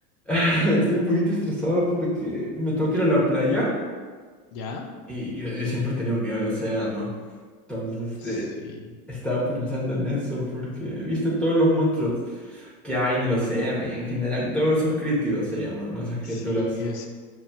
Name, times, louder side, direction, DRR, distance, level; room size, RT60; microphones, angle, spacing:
voice 1, 0.3-3.7 5.1-7.1 7.7-8.5 9.1-16.7, equal, ahead, -8 dB, 0.7 m, -25 dB
voice 2, 4.5-4.9 8.2-9.0 16.2-17.1, left 4 dB, 40° left, 3 dB, 0.5 m, -36 dB
5.9 x 2.3 x 2.2 m, 1.5 s
hypercardioid pair, 105°, 47 cm